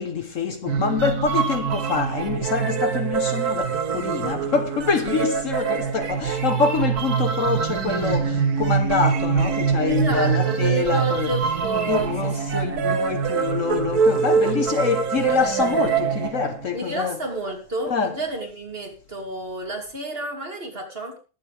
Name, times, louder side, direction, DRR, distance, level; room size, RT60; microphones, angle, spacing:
voice 1, 0.0-11.4 11.9-17.2 17.9-18.2, left 5 dB, 55° left, 1.3 m, -25 dB
sound 1, 0.7-16.7, right 6 dB, 70° right, 1.7 m, -24 dB
voice 2, 9.9-12.1 12.5-12.6 16.7-21.2, right 2 dB, 35° right, 3.2 m, -29 dB
20.5 x 8.2 x 3.4 m
omnidirectional pair, 1.7 m